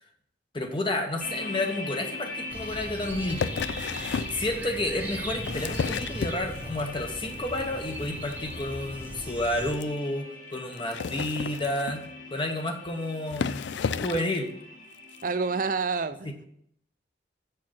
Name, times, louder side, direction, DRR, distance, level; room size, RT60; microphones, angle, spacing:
voice 1, 0.5-3.5 4.3-12.0 12.3-13.7 14.0-14.5 16.2-16.5, left 1 dB, 25° left, 5 dB, 0.8 m, -30 dB
sound 1, 1.2-15.7, left 2 dB, 45° left, 1.7 m, -41 dB
sound 2, 2.5-9.7, equal, 10° right, 0.8 m, -39 dB
sound 3, 3.3-4.4 5.2-6.8 7.2-7.6 7.9-8.1 8.3-8.4 8.6-8.7 9.0-9.1 9.7-9.8 10.8-12.1 12.9-13.0 13.3-14.4 15.1-15.2, left 6 dB, 75° left, 0.4 m, -32 dB
voice 2, 15.2-16.5, right 4 dB, 45° right, 12 dB, 0.5 m, -28 dB
7.1 x 4.6 x 6.2 m, 0.70 s
head